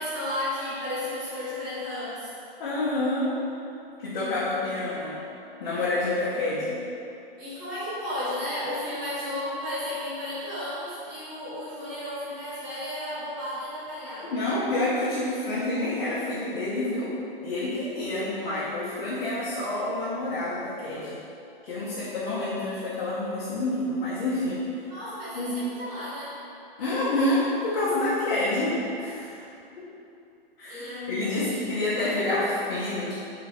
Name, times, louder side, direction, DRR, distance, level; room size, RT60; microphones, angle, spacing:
voice 1, 0.0-2.3 7.4-14.3 24.9-26.4 30.7-31.6 32.0-32.5, left 1 dB, 25° right, -11 dB, 1.4 m, -33 dB
voice 2, 2.6-3.4 4.0-5.2 5.6-6.8 14.3-17.1 17.4-21.2 21.6-24.6 25.3-25.6 26.8-29.4 29.8-29.9 30.6-33.1, left 2 dB, 55° left, -10 dB, 0.9 m, -28 dB
3.3 x 2.4 x 3.3 m, 2.7 s
hypercardioid pair, 140°, 30 cm